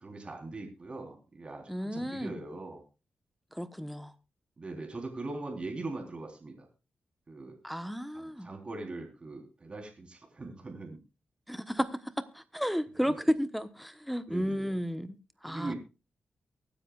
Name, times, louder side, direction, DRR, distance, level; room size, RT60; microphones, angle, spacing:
voice 1, 0.0-2.8 4.6-6.7 7.3-7.6 8.1-11.0 13.1-13.2 14.3-14.8 15.5-15.8, right 2 dB, 35° right, 3.7 m, -41 dB
voice 2, 1.7-2.4 3.5-4.1 7.6-8.5 11.5-15.2 15.4-15.7, equal, ahead, 1.0 m, -33 dB
23.5 x 10.0 x 2.4 m
wide cardioid pair, 105°, 3 cm